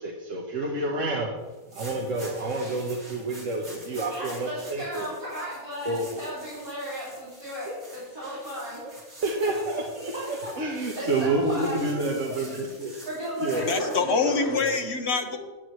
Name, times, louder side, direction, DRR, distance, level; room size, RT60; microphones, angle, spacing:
voice 1, 0.0-1.3 1.7-5.1 5.8-6.1 7.7-7.8 8.8-8.9 9.2-13.0 13.3-14.7, right 2 dB, 65° right, -1 dB, 1.7 m, -29 dB
sound 1, 1.5-14.0, right 1 dB, 85° right, 4.1 m, -47 dB
voice 2, 4.1-7.7 8.1-8.8 9.5-9.6 10.1-10.5 11.0-11.9 13.1-14.5, equal, 15° right, -9 dB, 3.2 m, -34 dB
voice 3, 13.5-15.4, left 5 dB, 55° left, 5 dB, 1.3 m, -26 dB
18.0 x 8.6 x 3.2 m, 1.2 s
omnidirectional pair, 1.4 m